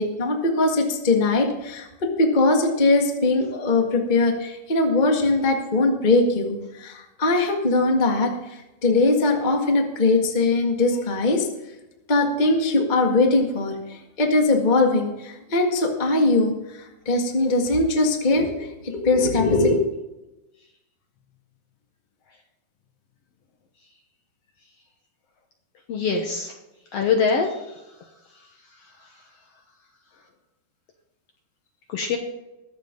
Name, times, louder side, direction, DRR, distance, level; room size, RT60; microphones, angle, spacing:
voice 1, 0.0-11.5 12.1-18.7 18.9-19.8, left 2 dB, 25° left, 2 dB, 1.1 m, -21 dB
voice 2, 25.9-26.5 26.9-27.6 31.9-32.2, left 5 dB, 60° left, 3 dB, 1.8 m, -23 dB
21.5 x 7.4 x 3.8 m, 0.99 s
omnidirectional pair, 3.7 m